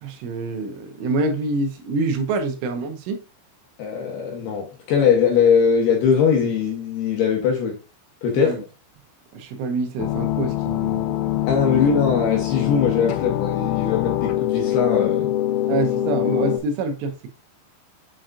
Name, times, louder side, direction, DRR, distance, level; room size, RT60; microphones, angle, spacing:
voice 1, 0.0-3.2 8.3-8.6 9.3-11.3 11.8-11.9 15.7-17.2, right 3 dB, 80° right, 3.4 m, -26 dB
voice 2, 3.8-7.8 8.2-8.6 11.5-15.3, left 6 dB, 70° left, 2.6 m, -20 dB
sound 1, 10.0-16.6, left 13 dB, 85° left, 3.4 m, -24 dB
7.7 x 5.9 x 2.5 m
omnidirectional pair, 5.7 m